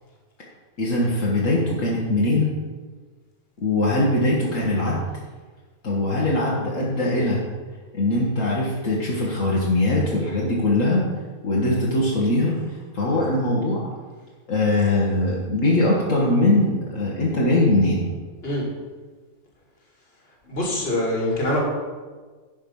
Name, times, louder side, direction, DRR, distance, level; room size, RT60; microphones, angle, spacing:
voice 1, 0.8-2.5 3.6-5.0 5.8-7.4 7.9-11.0 11.4-12.6 12.9-13.9 14.5-18.1, left 2 dB, 65° left, -5 dB, 1.8 m, -21 dB
voice 2, 20.5-21.6, left 1 dB, 45° left, -2 dB, 2.2 m, -24 dB
10.5 x 5.4 x 5.4 m, 1.4 s
omnidirectional pair, 1.5 m